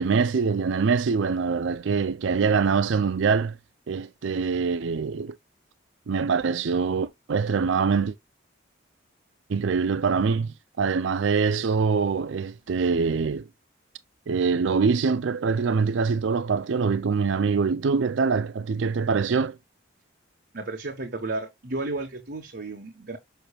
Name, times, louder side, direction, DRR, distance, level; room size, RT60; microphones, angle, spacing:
voice 1, 0.0-3.6 3.9-5.4 6.1-8.1 9.5-13.5 14.3-19.6, right 5 dB, 70° right, 0.4 m, -24 dB
voice 2, 20.5-23.2, right 2 dB, 55° right, 1.2 m, -33 dB
6.8 x 6.0 x 2.3 m
head